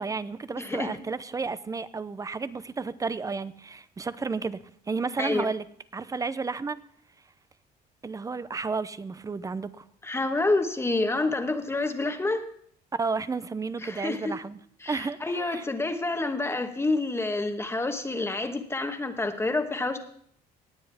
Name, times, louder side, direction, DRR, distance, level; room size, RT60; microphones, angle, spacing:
voice 1, 0.0-4.6 4.9-5.6 5.9-6.8 8.0-9.8 12.9-14.6 14.9-15.6, right 4 dB, 20° right, 16 dB, 0.5 m, -32 dB
voice 2, 0.6-0.9 5.2-5.5 10.0-12.4 13.8-14.4 14.8-20.0, left 2 dB, 15° left, 7 dB, 1.2 m, -28 dB
19.5 x 7.7 x 3.5 m, 0.62 s
cardioid pair, 110°, 17 cm